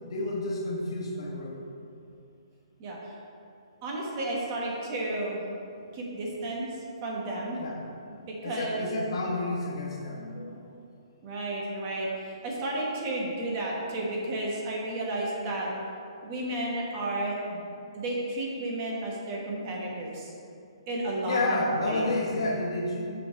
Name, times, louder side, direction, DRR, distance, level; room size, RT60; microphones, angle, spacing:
voice 1, 0.0-1.6 7.6-7.8 8.4-10.8 21.2-23.1, left 2 dB, 60° left, -1 dB, 1.3 m, -30 dB
voice 2, 2.8-3.1 3.8-5.4 5.9-6.7 7.0-7.6 8.3-8.9 11.2-15.7 16.2-17.6 17.9-20.3 20.9-22.1, right 1 dB, 30° right, -3 dB, 1.1 m, -32 dB
6.5 x 4.1 x 5.1 m, 2.6 s
hypercardioid pair, 165°, 3 cm